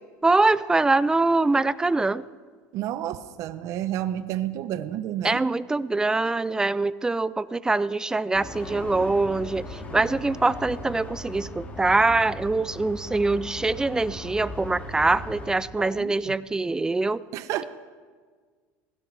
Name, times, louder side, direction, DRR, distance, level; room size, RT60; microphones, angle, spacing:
voice 1, 0.2-2.2 5.2-17.2, right 3 dB, 10° right, 18 dB, 0.3 m, -24 dB
voice 2, 2.7-5.4 15.8-16.3 17.3-17.6, right 12 dB, 55° right, 13 dB, 0.6 m, -30 dB
sound 1, 8.3-15.5, left 1 dB, 20° left, 2.2 m, -38 dB
16.5 x 16.0 x 3.2 m, 1.6 s
supercardioid pair, 120°, 7 cm